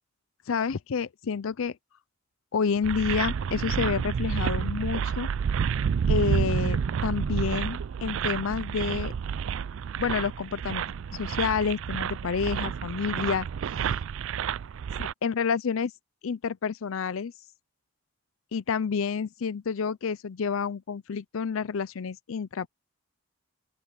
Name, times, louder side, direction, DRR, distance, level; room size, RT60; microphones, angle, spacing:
voice 1, 0.5-1.8 2.5-5.3 6.1-9.1 10.0-10.8 11.1-13.5 15.0-15.9 16.2-17.3 18.5-22.7, left 6 dB, 75° left, 0.5 m, -29 dB
sound 1, 2.8-15.1, right 7 dB, 70° right, 0.4 m, -29 dB
open air
head